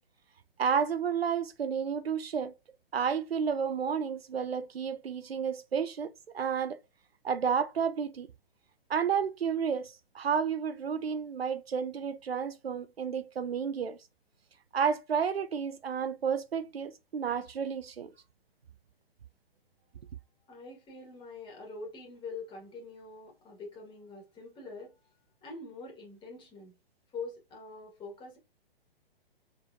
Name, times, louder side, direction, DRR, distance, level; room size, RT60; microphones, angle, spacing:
voice 1, 0.6-2.5 2.9-6.8 7.2-8.3 8.9-14.0 14.7-18.1, right 7 dB, 90° right, 0.5 m, -31 dB
voice 2, 20.5-25.0 25.4-26.7 27.1-28.4, left 3 dB, 15° left, 1.8 m, -44 dB
4.2 x 3.6 x 2.6 m
figure-of-eight pair, 125°, 29 cm